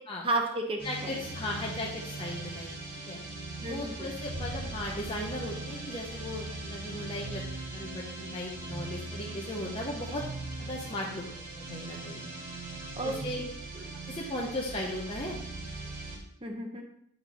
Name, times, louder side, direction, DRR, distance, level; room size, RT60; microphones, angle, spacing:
voice 1, 0.2-1.2 3.6-4.1 13.0-13.2 16.4-16.8, right 2 dB, 25° right, 3 dB, 0.9 m, -32 dB
voice 2, 0.8-2.7 3.1-3.2 3.6-7.4 7.7-10.3 10.6-11.3 11.5-12.2 13.0-13.4 14.1-15.4, left 1 dB, 25° left, -3 dB, 0.8 m, -37 dB
sound 1, 0.8-16.2, right 2 dB, 55° right, 2.6 m, -40 dB
7.9 x 4.3 x 3.9 m, 0.72 s
head